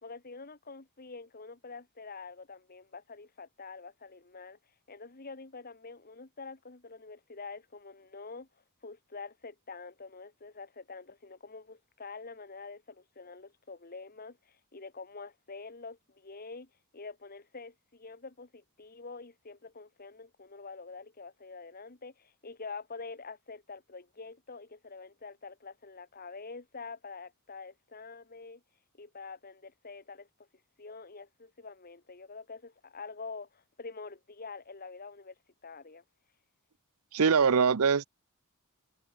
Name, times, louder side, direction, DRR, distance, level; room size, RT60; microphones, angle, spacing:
voice 1, 0.0-4.6 4.9-8.5 8.8-28.6 29.0-30.5 30.8-35.3 35.6-36.0, left 4 dB, 40° left, 1.7 m, -46 dB
voice 2, 37.1-38.1, right 6 dB, 75° right, 0.6 m, -23 dB
head